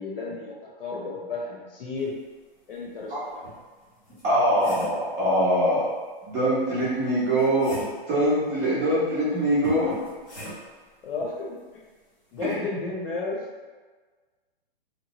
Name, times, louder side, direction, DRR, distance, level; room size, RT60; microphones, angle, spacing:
voice 1, 0.0-2.1 2.7-3.4 9.6-9.9 11.0-11.8 12.3-13.4, left 3 dB, 65° left, -3 dB, 0.9 m, -33 dB
sound 1, 2.8-2.9 3.4-5.1 6.8-8.1 9.6-10.8 12.4-12.6, right 1 dB, 20° left, 0.7 m, -41 dB
voice 2, 4.2-5.9 6.2-7.7 8.1-9.9 12.4-12.6, equal, 20° right, -10 dB, 0.7 m, -23 dB
2.9 x 2.0 x 2.9 m, 1.4 s
hypercardioid pair, 165°, 30 cm